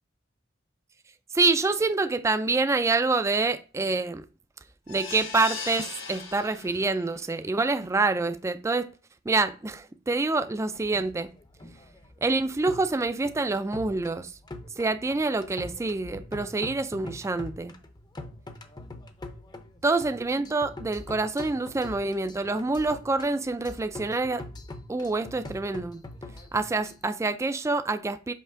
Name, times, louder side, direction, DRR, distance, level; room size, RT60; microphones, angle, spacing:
voice 1, 1.3-4.2 4.9-8.9 9.3-11.3 12.2-14.3 14.8-17.7 19.8-24.4 24.9-26.0 26.5-28.3, right 3 dB, 15° right, 0.3 m, -26 dB
sound 1, 4.9-7.1 7.6-7.7 8.0-8.1, left 5 dB, 70° left, 1.4 m, -38 dB
sound 2, 10.8-27.1, left 2 dB, 20° left, 0.6 m, -44 dB
5.6 x 5.3 x 3.6 m
head